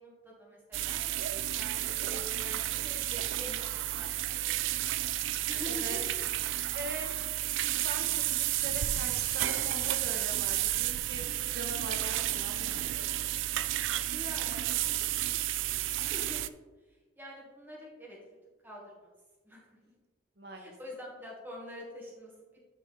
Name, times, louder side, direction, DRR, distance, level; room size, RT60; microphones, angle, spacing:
voice 1, 0.0-4.6 5.5-6.2 14.1-14.6 15.0-15.1 15.5-16.4 17.2-18.2 18.6-19.1 19.4-19.6 20.5-22.3, left 1 dB, 10° right, -4 dB, 1.8 m, -46 dB
sound 1, 0.7-16.5, right 14 dB, 80° right, 0.3 m, -32 dB
voice 2, 5.7-6.0 6.7-7.1 7.8-13.1 20.4-20.7, right 1 dB, 55° right, 3 dB, 1.0 m, -42 dB
9.7 x 4.6 x 3.4 m, 1.2 s
head